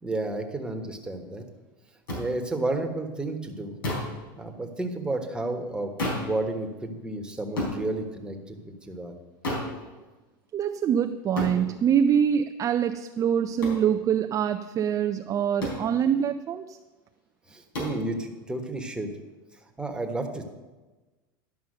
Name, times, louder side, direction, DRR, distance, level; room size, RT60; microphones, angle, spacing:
voice 1, 0.0-1.4 2.1-3.8 4.3-9.1 17.5-19.1 19.8-20.4, right 2 dB, 10° right, 3 dB, 1.3 m, -32 dB
sound 1, 2.1-2.2 3.8-4.2 6.0-6.3 7.6-7.8 9.4-9.7 11.4-11.6 13.6-13.8 15.6-15.9 17.7-18.0, left 1 dB, 85° left, 4.0 m, -30 dB
voice 2, 10.5-16.8, right 8 dB, 30° right, 7 dB, 0.4 m, -24 dB
11.5 x 5.6 x 6.5 m, 1.2 s
hypercardioid pair, 100°, 12 cm